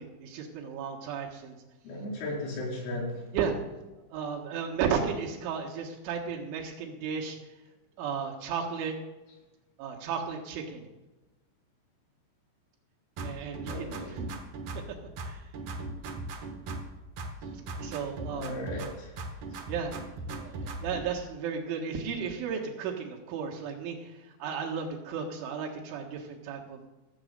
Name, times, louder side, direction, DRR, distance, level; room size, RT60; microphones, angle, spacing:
voice 1, 0.0-1.6 3.3-3.6 4.1-7.4 8.0-8.9 9.8-10.9 13.2-14.3 15.2-15.4 17.8-18.6 19.7-20.0 20.3-26.8, right 6 dB, 80° right, 0 dB, 4.1 m, -34 dB
voice 2, 1.8-3.3 13.7-14.2 18.3-19.1 19.5-19.6, left 1 dB, 85° left, -3 dB, 6.9 m, -36 dB
sound 1, 13.2-14.9 15.2-16.9 17.2-18.9 19.2-21.0, right 2 dB, 65° right, 2.0 m, -38 dB
15.0 x 6.4 x 8.1 m, 1.1 s
omnidirectional pair, 5.4 m